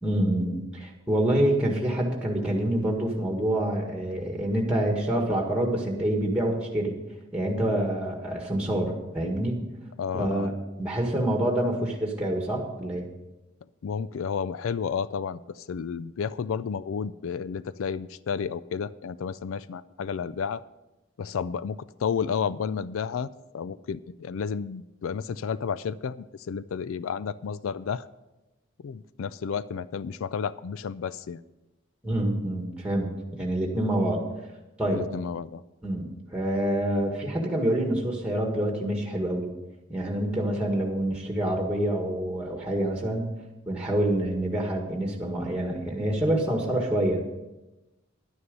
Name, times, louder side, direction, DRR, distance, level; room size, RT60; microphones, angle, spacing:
voice 1, 0.0-6.9 7.3-9.6 10.1-10.5 10.8-13.1 32.0-34.2 34.8-35.0 35.8-39.5 39.9-43.3 43.7-47.2, right 1 dB, 5° right, 1 dB, 1.7 m, -27 dB
voice 2, 10.0-10.5 13.8-20.6 21.2-28.1 28.8-31.4 34.9-35.6, left 6 dB, 85° left, 17 dB, 0.4 m, -31 dB
11.0 x 9.7 x 5.3 m, 1.0 s
head